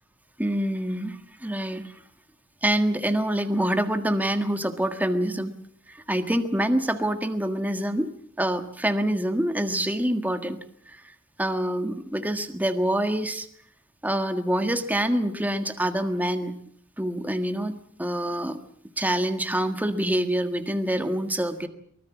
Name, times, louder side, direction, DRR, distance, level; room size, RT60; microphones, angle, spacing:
voice 1, 0.4-1.9 2.6-5.5 5.9-8.1 8.4-10.6 10.9-11.0 11.4-13.5 14.0-16.5 17.0-18.6 19.0-21.7, right 1 dB, 10° right, 7 dB, 1.6 m, -26 dB
24.0 x 19.5 x 7.2 m, 0.63 s
head